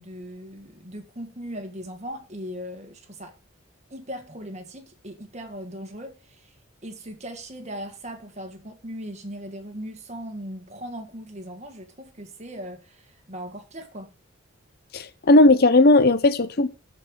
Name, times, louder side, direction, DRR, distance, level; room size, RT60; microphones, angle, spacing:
voice 1, 0.0-3.3 3.9-6.5 6.8-14.1, equal, 30° right, 1.8 m, -38 dB
voice 2, 14.9-16.7, left 2 dB, 45° left, 0.7 m, -16 dB
14.5 x 5.4 x 4.9 m
head